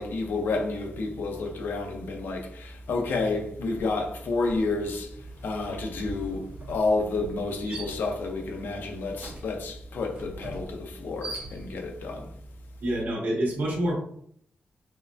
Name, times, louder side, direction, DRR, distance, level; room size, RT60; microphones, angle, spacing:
voice 1, 0.0-5.1 5.4-12.2, left 3 dB, 80° left, 0.8 m, -30 dB
sound 1, 3.0-3.3 3.6-12.0, right 2 dB, 40° right, 1.5 m, -43 dB
voice 2, 12.8-13.9, right 1 dB, 80° right, 1.6 m, -27 dB
4.8 x 3.2 x 2.6 m
wide cardioid pair, 175°, 3 cm